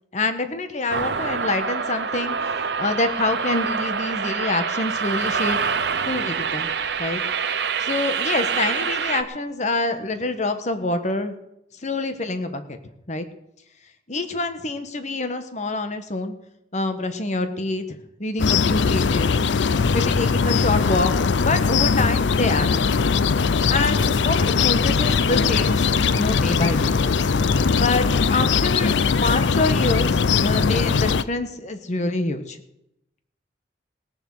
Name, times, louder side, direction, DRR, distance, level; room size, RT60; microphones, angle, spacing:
voice 1, 0.1-5.6 6.0-6.7 7.0-7.2 7.8-11.4 11.8-12.8 13.1-13.3 14.1-16.3 16.7-19.3 19.9-22.8 23.7-26.9 27.7-32.6, left 2 dB, 40° left, 8 dB, 1.3 m, -26 dB
sound 1, 0.9-9.2, right 6 dB, 70° right, 0.8 m, -26 dB
sound 2, 18.4-31.2, left 5 dB, 90° left, 0.5 m, -20 dB
17.5 x 7.3 x 7.7 m, 0.84 s
head